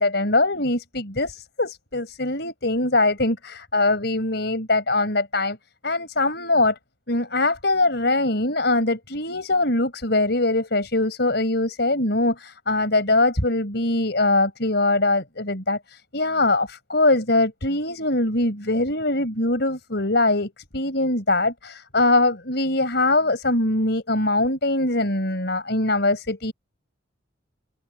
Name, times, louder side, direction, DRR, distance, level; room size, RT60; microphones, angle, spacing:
voice 1, 0.0-5.6 5.8-6.8 7.1-26.5, left 2 dB, 55° left, 5.7 m, -22 dB
head